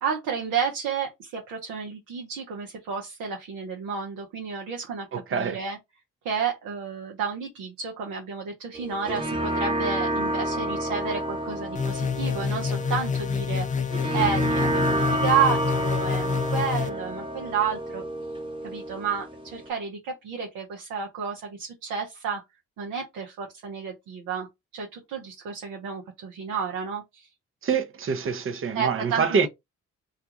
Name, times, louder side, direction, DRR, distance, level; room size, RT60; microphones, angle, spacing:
voice 1, 0.0-5.8 6.2-13.9 14.1-18.0 18.6-22.4 22.8-24.5 24.7-27.3 28.7-29.5, right 6 dB, 70° right, 0.8 m, -31 dB
voice 2, 5.1-5.6 27.6-29.5, right 6 dB, 40° right, 0.7 m, -25 dB
sound 1, 8.7-19.7, right 1 dB, 15° right, 1.0 m, -29 dB
sound 2, 11.7-16.9, left 6 dB, 25° left, 0.4 m, -28 dB
2.4 x 2.3 x 2.9 m
hypercardioid pair, 50°, 34 cm